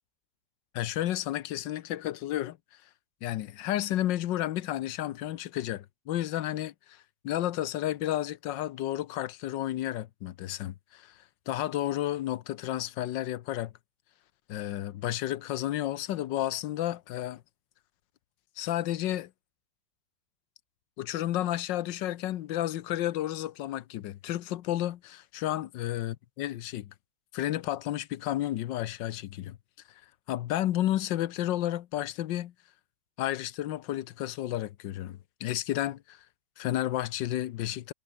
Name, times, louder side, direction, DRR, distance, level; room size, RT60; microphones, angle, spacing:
voice 1, 0.7-2.6 3.2-7.0 7.2-11.1 11.5-13.7 14.5-17.4 18.6-19.3 21.0-26.9 27.3-29.6 30.3-32.5 33.2-36.2 36.6-37.9, left 13 dB, 85° left, 1.5 m, -32 dB
omnidirectional pair, 1.9 m